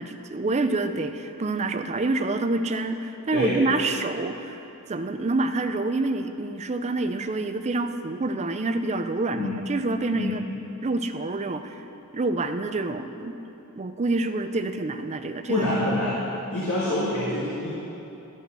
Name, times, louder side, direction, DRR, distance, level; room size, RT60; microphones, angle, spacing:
voice 1, 0.0-4.6 4.9-10.4 10.8-11.9 12.1-13.3 13.8-15.7, right 2 dB, 30° right, 8 dB, 0.4 m, -27 dB
voice 2, 15.5-16.1 16.5-17.7, left 1 dB, 75° left, -8 dB, 1.8 m, -26 dB
11.5 x 5.4 x 7.5 m, 3.0 s
head